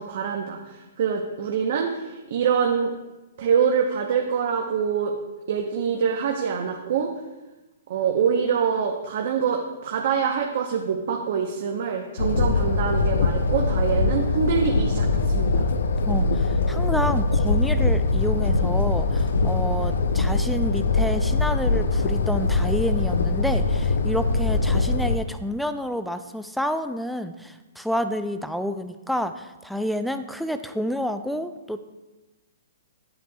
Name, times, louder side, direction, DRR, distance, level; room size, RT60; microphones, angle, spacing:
voice 1, 0.0-2.9 3.4-5.1 5.5-7.1 7.9-15.7, right 7 dB, 55° right, 2 dB, 0.8 m, -25 dB
sound 1, 12.2-25.2, left 3 dB, 80° left, 0.6 m, -22 dB
voice 2, 16.0-31.8, equal, ahead, 9 dB, 0.3 m, -29 dB
10.0 x 7.9 x 2.3 m, 1.1 s
hypercardioid pair, 155°, 0 cm